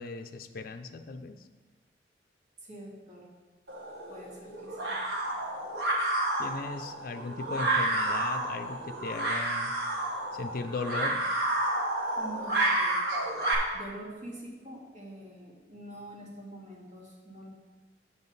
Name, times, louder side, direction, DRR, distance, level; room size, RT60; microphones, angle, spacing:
voice 1, 0.0-1.4 6.4-9.7 10.3-11.2, left 3 dB, 55° left, 7 dB, 0.4 m, -37 dB
voice 2, 2.6-3.2 4.1-4.9 12.2-12.9 13.7-17.5, right 1 dB, 45° right, -5 dB, 2.4 m, -45 dB
sound 1, 3.7-13.5, right 1 dB, 65° right, 1.5 m, -30 dB
7.5 x 7.0 x 4.0 m, 1.3 s
head